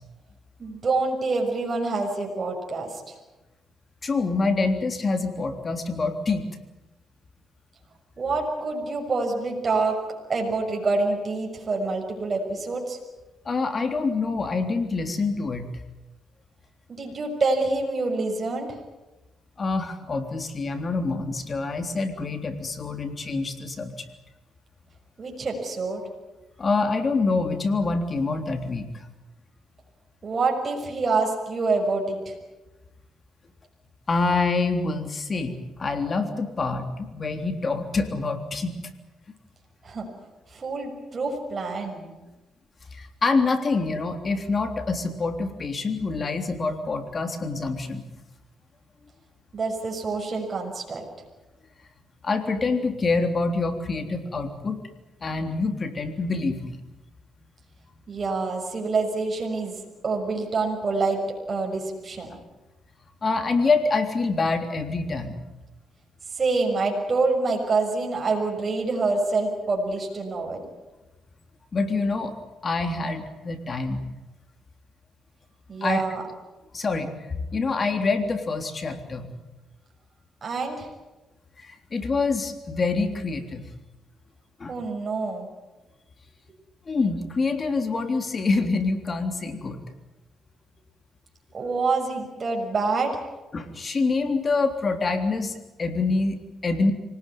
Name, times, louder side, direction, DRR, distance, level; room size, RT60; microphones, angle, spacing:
voice 1, 0.6-3.1 8.2-10.0 10.3-13.0 16.9-18.8 25.2-26.0 30.2-32.3 39.8-40.1 40.5-42.1 49.5-51.0 58.1-59.8 60.0-61.2 61.5-62.3 66.3-70.6 75.7-76.2 80.4-80.9 84.7-85.5 91.5-93.3, right 3 dB, 40° right, 1 dB, 6.4 m, -26 dB
voice 2, 4.0-6.5 13.5-15.7 19.6-24.1 26.6-29.1 34.1-38.8 42.9-48.0 52.2-54.8 55.2-56.8 63.2-65.4 71.7-72.3 72.6-74.0 75.8-76.0 76.7-79.3 81.6-83.6 84.6-84.7 86.9-89.8 93.5-96.9, left 3 dB, 35° left, 7 dB, 3.5 m, -26 dB
25.5 x 18.5 x 9.6 m, 1.1 s
cardioid pair, 90°, 0 cm